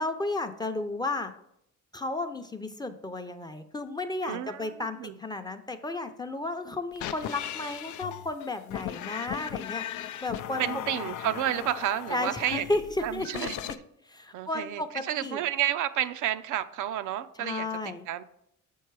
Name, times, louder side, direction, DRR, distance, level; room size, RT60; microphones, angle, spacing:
voice 1, 0.0-1.3 1.9-9.8 10.2-10.6 12.1-13.5 14.1-15.4 17.4-18.0, left 2 dB, 15° left, 7 dB, 0.6 m, -33 dB
voice 2, 4.2-5.2 10.6-12.7 13.0-13.6 14.3-17.7 18.1-18.2, right 12 dB, 80° right, 11 dB, 0.5 m, -31 dB
sound 1, 6.9-13.8, left 11 dB, 80° left, 0.5 m, -37 dB
6.5 x 4.6 x 4.6 m, 0.75 s
cardioid pair, 90°, 30 cm